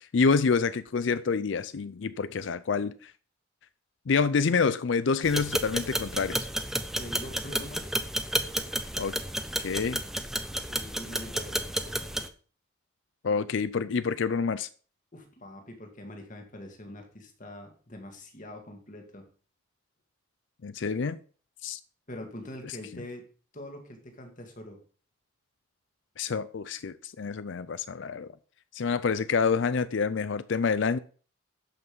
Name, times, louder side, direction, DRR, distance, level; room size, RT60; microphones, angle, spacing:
voice 1, 0.1-3.1 4.1-6.5 9.0-9.1 9.6-10.0 13.2-14.7 20.6-21.2 21.6-21.8 26.2-28.3 28.7-31.0, left 5 dB, 65° left, 0.5 m, -27 dB
sound 1, 5.2-12.3, right 1 dB, ahead, 0.7 m, -32 dB
voice 2, 7.0-8.0 10.7-11.6 15.1-19.3 22.1-23.2 23.5-24.8, left 1 dB, 40° left, 2.2 m, -43 dB
11.5 x 5.6 x 5.4 m
head